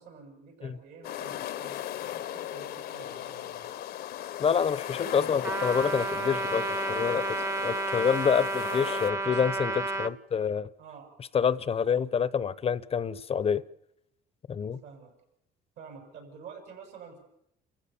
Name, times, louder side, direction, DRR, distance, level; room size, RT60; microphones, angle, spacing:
voice 1, 0.0-3.7 9.2-10.0 10.8-11.2 11.9-12.1 14.8-15.1 15.8-17.2, right 6 dB, 80° right, 7.4 m, -48 dB
sound 1, 1.0-9.1, left 12 dB, 70° left, 0.9 m, -37 dB
voice 2, 4.4-10.7 11.3-13.6 14.5-14.8, left 7 dB, 35° left, 0.7 m, -27 dB
Trumpet, 5.4-10.1, right 2 dB, 15° right, 0.8 m, -31 dB
29.0 x 15.0 x 7.1 m
cardioid pair, 110°, 17 cm